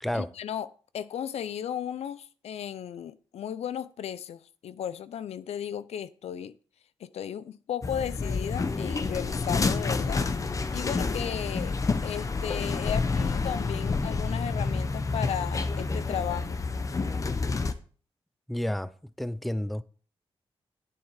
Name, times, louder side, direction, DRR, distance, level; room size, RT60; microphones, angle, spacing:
voice 1, 0.1-0.7 0.9-6.5 7.0-10.3 10.7-11.8 12.0-16.6, left 9 dB, 85° left, 0.6 m, -35 dB
sound 1, 7.8-17.7, left 4 dB, 30° left, 0.9 m, -29 dB
voice 2, 18.5-18.9 19.2-19.8, left 1 dB, ahead, 0.5 m, -30 dB
10.0 x 7.3 x 4.8 m
wide cardioid pair, 120°, 11 cm